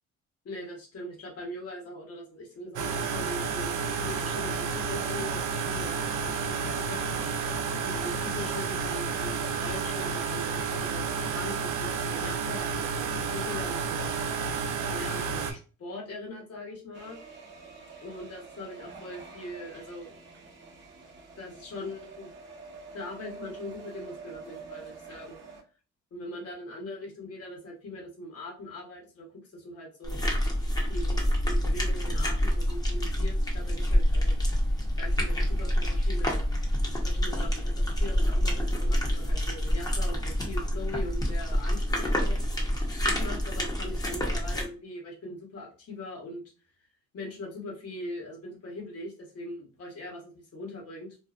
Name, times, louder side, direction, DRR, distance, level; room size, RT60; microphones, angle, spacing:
voice 1, 0.4-7.0 7.8-14.1 14.9-17.2 18.0-20.2 21.4-22.3 22.9-25.4 26.1-30.3 30.9-34.4 35.0-36.5 37.0-37.7 38.0-42.4 43.0-46.4 47.1-51.2, left 1 dB, 50° left, 0 dB, 1.2 m, -41 dB
sound 1, 2.8-15.5, right 5 dB, 80° right, 0.5 m, -31 dB
sound 2, 16.9-25.6, right 4 dB, 40° right, 0.8 m, -47 dB
sound 3, 30.0-44.6, equal, 15° left, 0.8 m, -27 dB
2.6 x 2.2 x 2.4 m, 0.36 s
cardioid pair, 90°, 30 cm